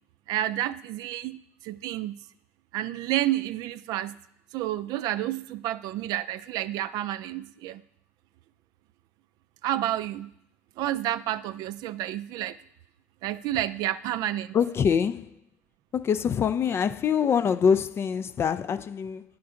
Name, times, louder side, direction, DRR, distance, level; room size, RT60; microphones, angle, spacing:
voice 1, 0.3-2.2 2.7-4.2 4.5-7.8 9.6-10.3 10.8-12.6 13.2-14.6, right 13 dB, 55° right, 0.4 m, -30 dB
voice 2, 14.5-15.3 15.9-19.2, left 7 dB, 30° left, 0.3 m, -24 dB
8.6 x 5.9 x 3.7 m
hypercardioid pair, 85°, 8 cm